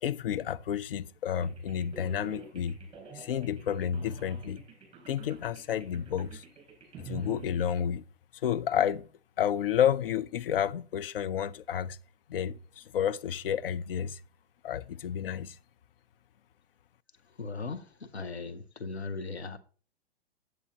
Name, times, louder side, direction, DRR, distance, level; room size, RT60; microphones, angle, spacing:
voice 1, 0.0-2.8 3.1-4.6 5.1-6.4 7.0-8.1 8.3-9.1 9.4-12.0 12.3-14.2 14.6-15.6, left 9 dB, 60° left, 0.6 m, -30 dB
sound 1, 1.4-7.8, right 6 dB, 15° right, 3.5 m, -48 dB
voice 2, 17.4-19.6, left 4 dB, 85° left, 0.9 m, -38 dB
9.4 x 8.0 x 2.9 m
figure-of-eight pair, 110°, 32 cm